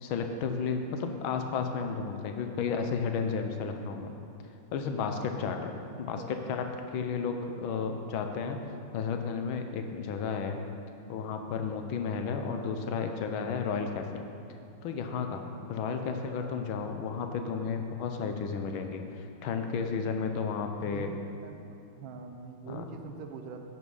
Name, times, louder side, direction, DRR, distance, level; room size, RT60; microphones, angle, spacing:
voice 1, 0.0-4.1 4.7-5.7 6.0-6.2 6.5-6.7 6.9-8.6 8.9-10.6 11.1-14.3 14.8-15.4 15.7-21.1 22.7-22.9, left 5 dB, 85° left, 5 dB, 1.5 m, -32 dB
voice 2, 5.9-6.5 7.7-7.9 12.4-12.7 16.1-16.6 20.8-21.5 22.0-23.6, right 5 dB, 85° right, 5 dB, 1.6 m, -44 dB
8.6 x 6.3 x 5.4 m, 2.7 s
omnidirectional pair, 2.2 m